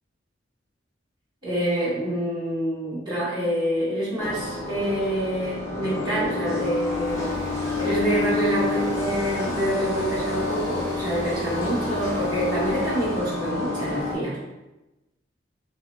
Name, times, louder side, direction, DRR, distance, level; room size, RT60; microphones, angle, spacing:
voice 1, 1.4-7.4 7.8-14.4, right 1 dB, 25° right, -10 dB, 1.5 m, -26 dB
sound 1, 4.2-14.1, left 3 dB, 15° left, 0.7 m, -29 dB
sound 2, 6.7-13.2, equal, 45° right, 1.0 m, -40 dB
5.8 x 2.0 x 2.2 m, 1.0 s
head